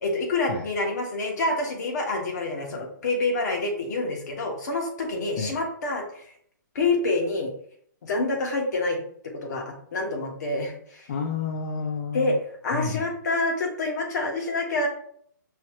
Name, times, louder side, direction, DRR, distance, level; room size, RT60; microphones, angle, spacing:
voice 1, 0.0-6.3 6.7-7.5 8.0-9.0 9.3-11.1 12.1-12.4 12.6-14.9, left 2 dB, 60° left, 1 dB, 1.2 m, -27 dB
voice 2, 11.1-12.4 12.7-13.1, left 5 dB, 40° left, 2 dB, 0.4 m, -30 dB
5.5 x 2.1 x 3.0 m, 0.62 s
hypercardioid pair, 170°, 11 cm